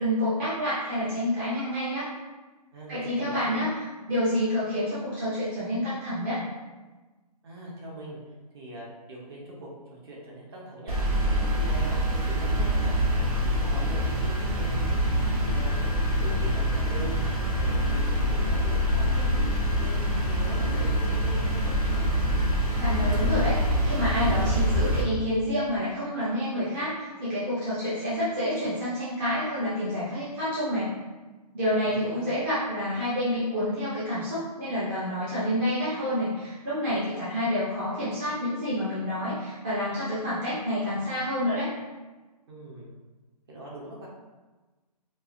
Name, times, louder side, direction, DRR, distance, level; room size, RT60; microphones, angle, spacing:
voice 1, 0.0-2.1 2.9-3.7 4.1-6.4 22.8-30.9 31.5-41.7, equal, 20° right, -11 dB, 0.6 m, -28 dB
voice 2, 2.7-3.5 7.4-8.2 8.5-11.0 11.2-12.7 13.0-14.9 15.3-15.8 16.2-19.3 19.8-21.8 31.8-32.3 42.5-42.9 43.5-44.1, right 1 dB, 35° right, -4 dB, 0.9 m, -41 dB
sound 1, 10.9-25.0, equal, 60° right, 1.2 m, -25 dB
4.6 x 2.5 x 2.5 m, 1.2 s
hypercardioid pair, 165°, 21 cm